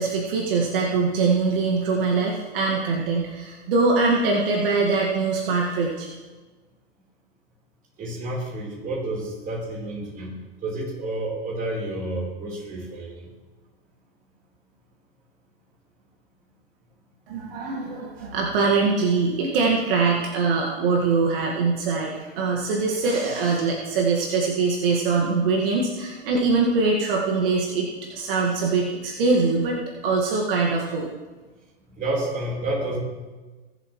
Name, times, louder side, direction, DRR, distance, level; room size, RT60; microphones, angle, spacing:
voice 1, 0.0-6.1 17.3-29.8 30.0-31.1, right 4 dB, 60° right, -2 dB, 2.0 m, -23 dB
voice 2, 8.0-13.3 32.0-33.0, right 2 dB, 25° right, -3 dB, 4.2 m, -30 dB
23.5 x 7.9 x 3.2 m, 1.3 s
hypercardioid pair, 125°, 31 cm